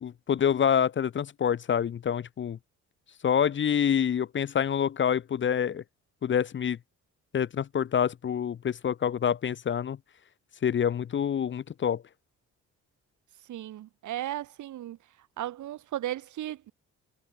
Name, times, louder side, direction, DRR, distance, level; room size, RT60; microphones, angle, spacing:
voice 1, 0.0-2.6 3.2-5.8 6.2-6.8 7.3-10.0 10.6-12.0, left 8 dB, 40° left, 0.7 m, -27 dB
voice 2, 13.5-15.0 15.4-16.7, right 13 dB, 75° right, 2.6 m, -35 dB
cardioid pair, 90°, 30 cm